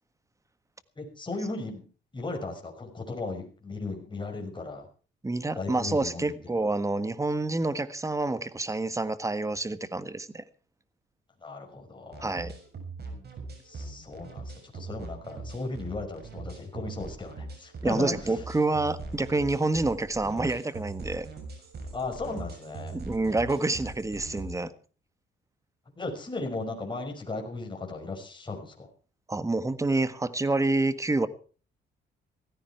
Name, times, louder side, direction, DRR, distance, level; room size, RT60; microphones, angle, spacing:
voice 1, 1.0-1.9 2.1-4.9 5.6-6.4 11.4-12.4 13.6-18.4 21.9-23.0 26.0-28.9, left 3 dB, 25° left, 5.8 m, -36 dB
voice 2, 5.2-10.4 12.2-12.5 17.8-21.3 22.9-24.7 29.3-31.3, right 2 dB, 15° right, 1.5 m, -28 dB
sound 1, 12.1-24.5, right 3 dB, 55° right, 6.9 m, -41 dB
17.0 x 15.5 x 4.6 m
cardioid pair, 90°, 20 cm